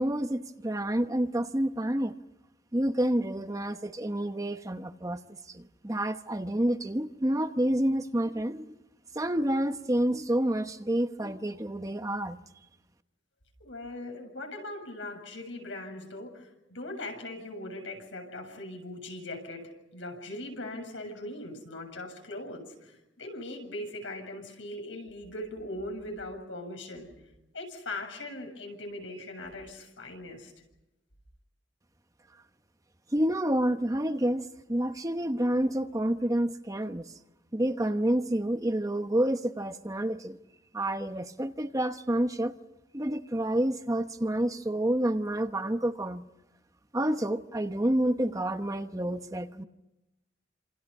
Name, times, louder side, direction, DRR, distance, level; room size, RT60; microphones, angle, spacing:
voice 1, 0.0-2.2 2.7-8.7 9.1-12.4 33.1-37.0 37.5-40.4 40.7-42.5 42.9-46.2 46.9-49.6, right 1 dB, 20° right, 1.0 m, -29 dB
voice 2, 13.6-27.1 27.5-30.5, left 1 dB, 80° left, 7.4 m, -40 dB
29.0 x 27.5 x 5.5 m
head